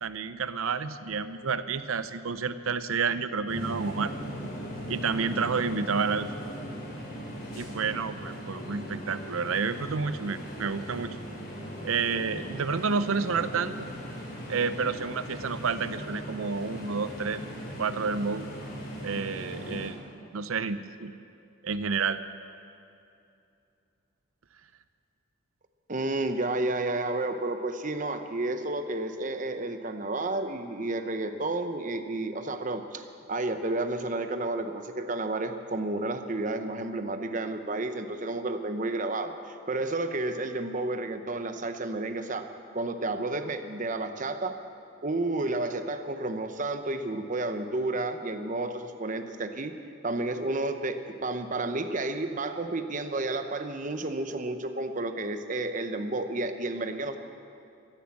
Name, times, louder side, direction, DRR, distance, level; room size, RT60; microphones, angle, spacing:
voice 1, 0.0-4.1 4.9-6.3 7.5-11.2 11.8-13.9 14.5-17.4 17.8-18.5 19.0-20.0 20.3-21.1 21.6-22.2, right 5 dB, 90° right, 12 dB, 0.7 m, -30 dB
sound 1, 3.5-19.9, equal, 50° left, 3.3 m, -39 dB
voice 2, 25.9-42.5 42.7-44.6 45.0-49.7 50.0-57.2, right 2 dB, 40° right, 8 dB, 0.8 m, -31 dB
16.0 x 10.0 x 7.2 m, 2.6 s
head